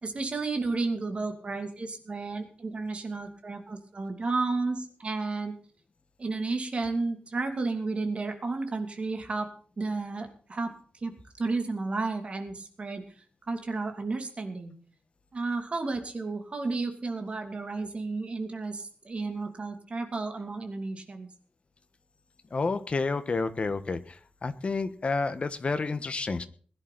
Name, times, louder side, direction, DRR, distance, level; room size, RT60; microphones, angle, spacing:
voice 1, 0.0-5.5 6.2-9.5 9.8-10.7 11.0-13.0 13.5-14.8 15.3-21.3, right 3 dB, 40° right, 6 dB, 2.8 m, -32 dB
voice 2, 22.5-26.5, left 4 dB, 40° left, 10 dB, 1.4 m, -30 dB
21.0 x 10.5 x 4.2 m, 0.43 s
wide cardioid pair, 145°, 3 cm